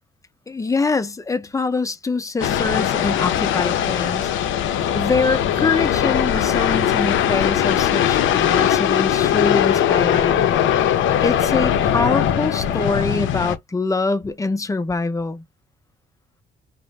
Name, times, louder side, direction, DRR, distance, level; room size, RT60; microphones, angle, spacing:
voice 1, 0.5-4.3 4.9-10.5 11.2-15.4, left 3 dB, 15° left, 0.5 m, -24 dB
sound 1, 2.4-13.6, left 10 dB, 80° left, 0.5 m, -20 dB
2.5 x 2.0 x 3.1 m
cardioid pair, 90°, 20 cm